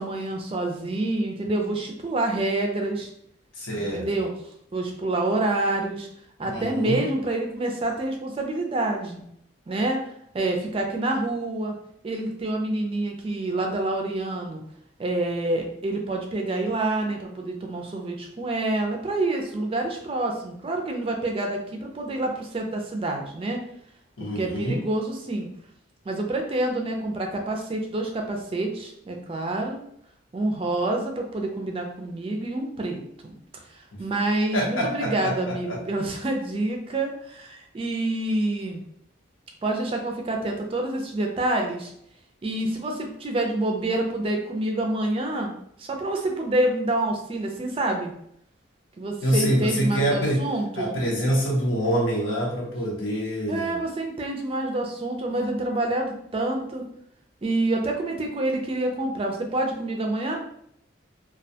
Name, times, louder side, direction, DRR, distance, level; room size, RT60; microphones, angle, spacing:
voice 1, 0.0-3.1 3.7-4.3 4.7-6.1 6.4-9.2 9.7-11.7 12.0-14.6 15.0-23.6 24.2-25.5 26.1-29.8 30.3-33.3 33.7-38.8 39.6-41.9 42.4-45.5 45.8-48.1 49.0-51.0 53.5-56.8 57.4-60.4, right 2 dB, 30° right, 2 dB, 0.3 m, -27 dB
voice 2, 3.6-4.0 6.5-7.0 24.2-24.8 33.9-34.0 34.5-35.8 49.2-50.4 50.8-53.8, equal, 90° left, -3 dB, 0.7 m, -25 dB
2.2 x 2.1 x 2.6 m, 0.71 s
head